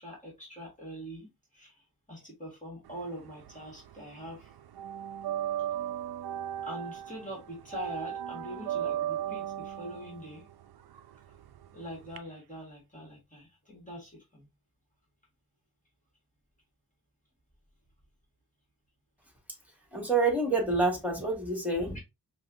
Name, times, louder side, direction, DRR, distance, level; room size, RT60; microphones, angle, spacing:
voice 1, 0.0-1.8 2.1-4.5 6.6-10.5 11.7-14.5, equal, 20° left, 1.5 m, -43 dB
sound 1, 2.9-4.0 4.3-12.2, right 10 dB, 80° right, 0.5 m, -36 dB
voice 2, 19.9-22.0, right 3 dB, 5° right, 1.7 m, -27 dB
5.2 x 2.2 x 2.5 m
wide cardioid pair, 85°, 38 cm